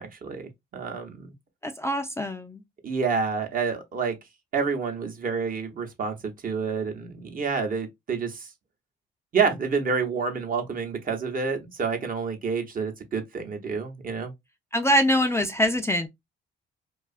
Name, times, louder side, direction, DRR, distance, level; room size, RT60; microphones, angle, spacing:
voice 1, 0.0-1.3 2.8-4.1 4.5-6.2 6.4-8.5 9.3-14.3, right 5 dB, 45° right, 0.8 m, -28 dB
voice 2, 1.6-2.6 14.7-16.1, equal, 15° left, 0.3 m, -24 dB
2.7 x 2.3 x 2.3 m
cardioid pair, 90°, 20 cm